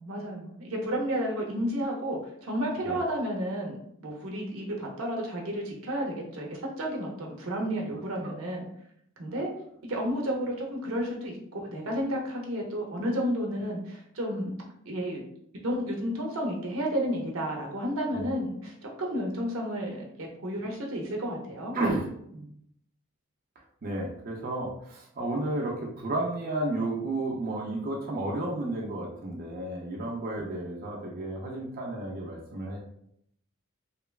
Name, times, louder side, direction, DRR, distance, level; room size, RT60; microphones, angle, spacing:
voice 1, 0.0-8.7 9.2-9.5 9.8-14.6 14.9-15.3 15.6-18.7 19.0-21.8 22.3-22.4 30.0-30.1, equal, 90° right, -1 dB, 0.7 m, -32 dB
voice 2, 21.7-22.0 23.8-32.8, right 2 dB, 45° right, -2 dB, 0.5 m, -32 dB
2.9 x 2.1 x 2.3 m, 0.70 s
head